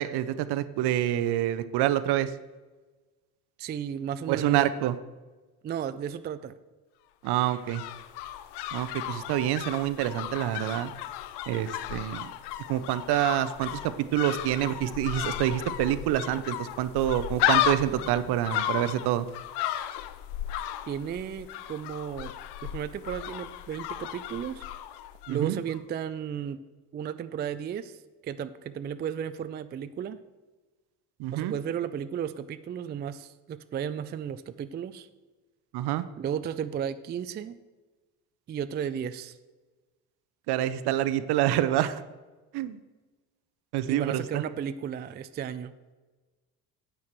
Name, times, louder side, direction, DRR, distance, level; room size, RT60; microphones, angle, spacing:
voice 1, 0.0-2.3 4.3-5.0 7.2-7.8 8.7-10.9 11.5-12.3 12.7-19.3 25.3-25.6 31.2-31.5 35.7-36.1 40.5-42.0 42.5-42.8 43.7-44.4, right 13 dB, 60° right, 13 dB, 0.7 m, -27 dB
voice 2, 3.6-4.7 5.6-6.5 20.9-22.3 22.6-24.7 25.3-26.6 26.9-28.0 28.2-30.2 31.3-35.1 36.2-37.5 38.5-39.4 43.9-45.7, right 8 dB, 25° right, 12 dB, 0.4 m, -34 dB
sound 1, 7.3-25.4 25.7-25.8, left 12 dB, 60° left, 0.7 m, -34 dB
9.3 x 8.4 x 3.1 m, 1.2 s
hypercardioid pair, 55°, 46 cm